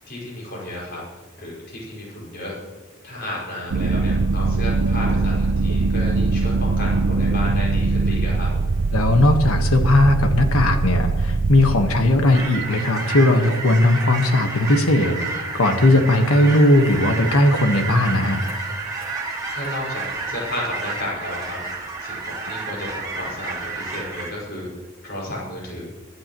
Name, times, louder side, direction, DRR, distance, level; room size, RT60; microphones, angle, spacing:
voice 1, 0.1-1.0 1.4-2.5 3.0-8.5 19.5-21.6 22.0-24.7 25.0-25.9, left 1 dB, 50° left, -4 dB, 5.7 m, -32 dB
sound 1, 3.7-12.4, right 3 dB, 80° right, 0.5 m, -21 dB
voice 2, 8.9-18.4, left 1 dB, 90° left, 6 dB, 1.5 m, -18 dB
sound 2, 12.3-24.3, right 3 dB, 15° right, 2.5 m, -30 dB
24.5 x 11.0 x 3.1 m, 1.3 s
head